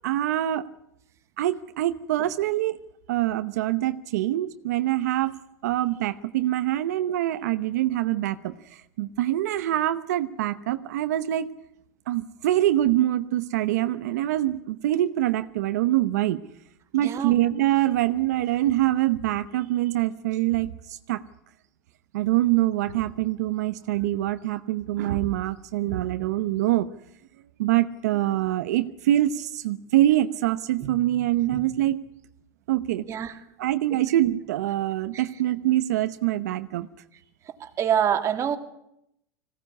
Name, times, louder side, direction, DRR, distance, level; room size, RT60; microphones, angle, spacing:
voice 1, 0.0-0.6 1.4-2.8 3.1-5.4 5.6-11.5 12.1-16.4 16.9-21.2 22.1-26.9 27.6-32.0 32.7-33.1 33.6-36.9, right 14 dB, 85° right, 10 dB, 0.9 m, -24 dB
voice 2, 17.0-17.3 30.8-31.0 31.5-31.6 33.1-33.4 35.1-35.3 37.4-38.6, right 9 dB, 35° right, 6 dB, 2.3 m, -26 dB
21.0 x 16.5 x 9.7 m, 0.80 s
supercardioid pair, 125°, 9 cm